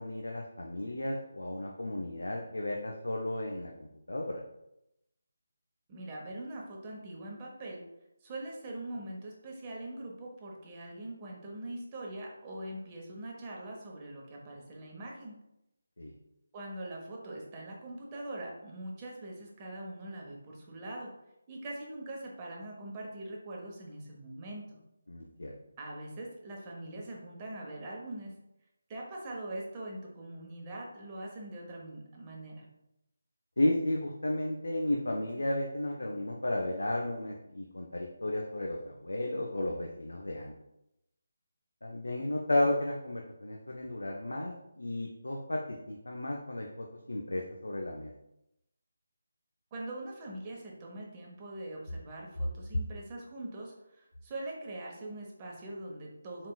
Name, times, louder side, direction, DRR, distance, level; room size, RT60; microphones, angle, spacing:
voice 1, 0.0-4.4 16.0-16.1 25.1-25.5 33.6-40.5 41.8-48.1, left 1 dB, 80° left, 1 dB, 0.5 m, -33 dB
voice 2, 5.9-7.8 8.2-15.3 16.5-21.1 21.5-24.8 25.8-28.3 28.9-32.7 49.7-56.5, right 1 dB, 25° right, -2 dB, 0.9 m, -42 dB
4.1 x 3.6 x 2.3 m, 0.87 s
figure-of-eight pair, 160°, 0 cm